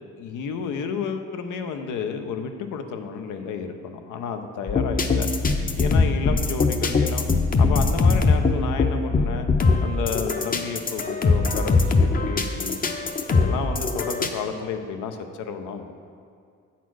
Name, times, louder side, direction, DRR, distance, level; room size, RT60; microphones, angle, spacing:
voice 1, 0.2-5.3 5.8-7.2 7.6-9.5 9.8-12.8 13.3-15.9, left 6 dB, 85° left, 6 dB, 0.7 m, -31 dB
sound 1, 4.7-14.3, left 3 dB, 30° left, 0.6 m, -21 dB
8.2 x 4.2 x 6.1 m, 2.3 s
cardioid pair, 90°, 30 cm